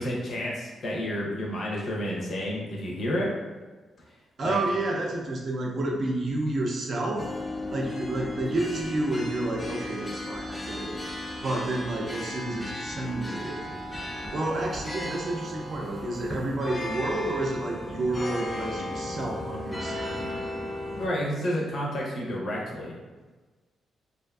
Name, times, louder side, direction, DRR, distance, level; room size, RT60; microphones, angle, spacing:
voice 1, 0.0-3.3 4.4-4.6 20.9-22.9, equal, 55° left, -3 dB, 0.6 m, -30 dB
voice 2, 4.4-7.3 7.7-11.0 11.4-13.6 14.3-20.2, right 2 dB, 50° right, 0 dB, 0.5 m, -30 dB
sound 1, 7.2-21.1, left 1 dB, 10° left, 0.4 m, -35 dB
2.5 x 2.4 x 2.2 m, 1.3 s
cardioid pair, 125°, 0 cm